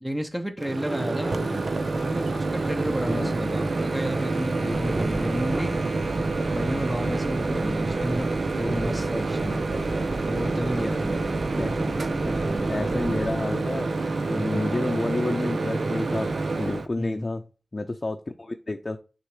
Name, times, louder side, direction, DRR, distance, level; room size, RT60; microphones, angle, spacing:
voice 1, 0.0-1.5 2.0-5.8 6.5-8.3 8.6-9.6 10.3-11.4 17.0-17.4, equal, 10° right, 1.0 m, -31 dB
Microwave oven, 0.6-16.9, right 3 dB, 65° right, 0.8 m, -27 dB
sound 1, 4.7-13.4, right 1 dB, 30° right, 0.6 m, -36 dB
voice 2, 12.3-13.9 14.3-17.4 17.7-19.0, left 2 dB, 40° left, 0.7 m, -30 dB
6.5 x 3.3 x 5.0 m
cardioid pair, 50°, 0 cm